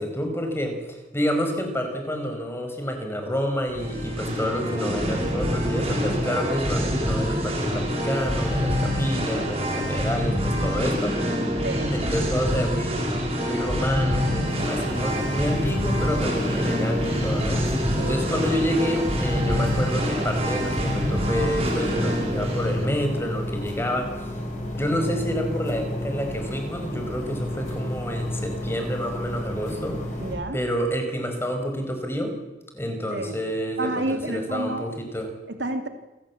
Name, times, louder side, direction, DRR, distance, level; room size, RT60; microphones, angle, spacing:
voice 1, 0.0-11.2 11.9-13.2 13.4-24.3 24.7-30.0 30.5-32.4 32.7-35.3, equal, 15° left, 5 dB, 5.0 m, -28 dB
Singing, 3.7-22.8, equal, 30° right, 7.2 m, -26 dB
voice 2, 11.6-11.9 18.0-18.3 30.2-30.6 33.1-33.4 33.8-34.8 35.5-35.9, right 2 dB, 75° right, 7 dB, 2.4 m, -29 dB
sound 1, 14.5-30.3, left 1 dB, 40° left, 6.3 m, -32 dB
28.0 x 17.0 x 8.5 m, 1.0 s
head